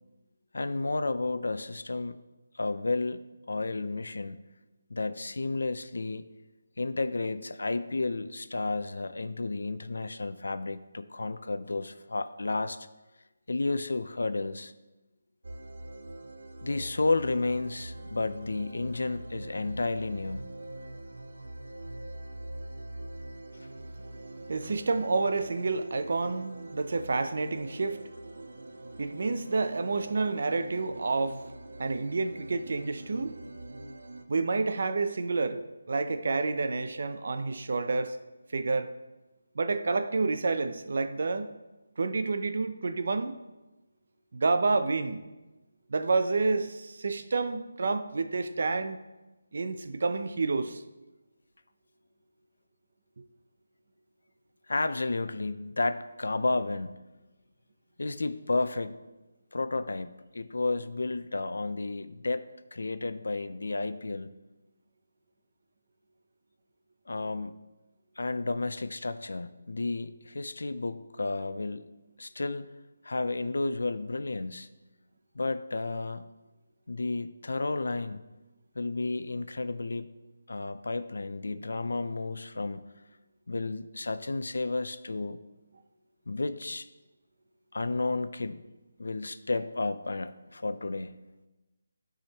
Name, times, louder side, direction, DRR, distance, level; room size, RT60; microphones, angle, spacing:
voice 1, 0.5-2.2 2.5-4.4 4.9-6.2 6.8-12.9 13.5-14.7 16.6-20.5 54.7-57.0 58.0-59.0 59.5-60.1 60.3-64.3 67.1-67.6 68.2-71.9 72.2-72.7 73.0-74.7 75.3-76.2 76.9-78.2 78.8-80.1 80.5-82.8 83.5-85.4 86.3-86.9 87.7-88.6 89.0-91.1, left 3 dB, 80° left, 12 dB, 0.5 m, -32 dB
sound 1, 15.4-34.2, right 1 dB, 90° right, 0.8 m, -44 dB
voice 2, 24.0-28.2 28.6-31.5 31.8-33.4 34.3-35.6 35.9-38.2 38.5-38.9 39.6-41.5 42.0-43.4 44.3-45.2 45.9-49.0 49.5-50.8, right 3 dB, 55° right, 10 dB, 0.5 m, -29 dB
12.0 x 4.9 x 2.9 m, 1.1 s
figure-of-eight pair, 170°, 0 cm